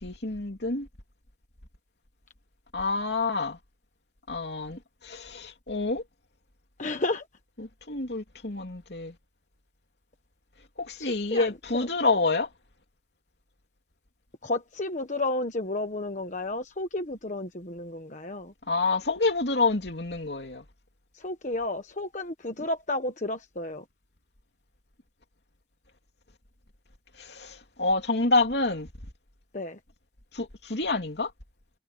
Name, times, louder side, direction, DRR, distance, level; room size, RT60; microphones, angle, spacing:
voice 1, 0.0-0.9 2.7-3.6 4.3-6.0 7.6-9.1 10.8-12.5 18.7-20.6 27.2-28.9 30.3-31.3, left 3 dB, 70° left, 2.7 m, -28 dB
voice 2, 6.8-7.2 11.0-11.9 14.4-18.5 21.1-23.8 29.5-29.8, left 2 dB, 45° left, 1.3 m, -32 dB
head